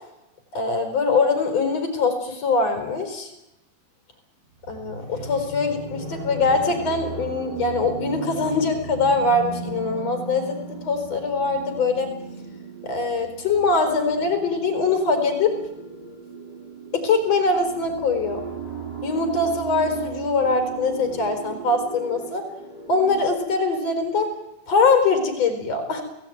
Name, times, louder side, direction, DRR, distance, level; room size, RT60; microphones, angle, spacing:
voice 1, 0.5-3.3 4.7-10.6 10.8-12.1 12.8-15.5 16.9-18.4 19.0-22.4 22.9-24.3 24.7-26.0, left 3 dB, 40° left, 7 dB, 5.3 m, -22 dB
sound 1, 4.6-23.3, right 4 dB, 25° right, 5.2 m, -36 dB
28.5 x 18.0 x 9.4 m, 0.92 s
omnidirectional pair, 4.4 m